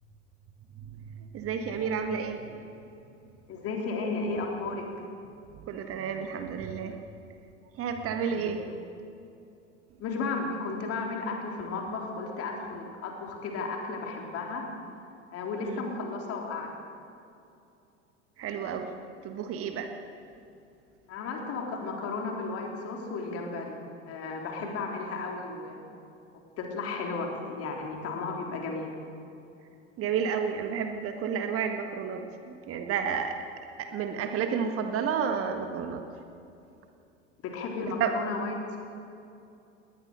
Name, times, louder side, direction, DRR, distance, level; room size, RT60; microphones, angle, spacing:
voice 1, 1.3-2.8 5.7-7.0 7.8-8.6 15.6-15.8 18.4-18.9 19.2-19.9 24.6-24.7 30.0-33.4 33.8-36.0 38.0-38.1, right 7 dB, 35° right, 6 dB, 1.6 m, -31 dB
voice 2, 3.5-4.9 8.3-8.5 10.0-14.7 15.3-16.8 21.1-23.8 24.1-25.8 26.6-28.9 37.4-38.8, left 3 dB, 40° left, 1 dB, 3.9 m, -34 dB
19.5 x 19.5 x 6.8 m, 2.6 s
figure-of-eight pair, 75°, 37 cm